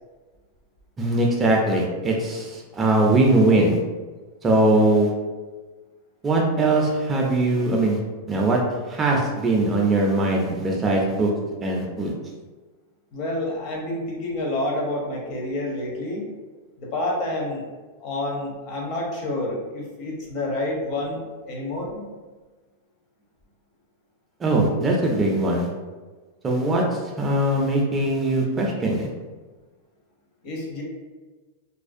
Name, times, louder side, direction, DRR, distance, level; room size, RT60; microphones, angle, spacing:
voice 1, 1.0-3.8 4.4-5.1 6.2-8.0 8.3-8.6 8.9-11.3 11.6-12.1 24.4-25.7 26.4-29.1, right 2 dB, 20° right, -1 dB, 0.3 m, -21 dB
voice 2, 13.1-16.3 16.8-17.6 18.0-22.0 30.4-30.8, left 1 dB, 45° left, -1 dB, 0.6 m, -28 dB
2.4 x 2.0 x 2.5 m, 1.3 s
supercardioid pair, 140°, 0 cm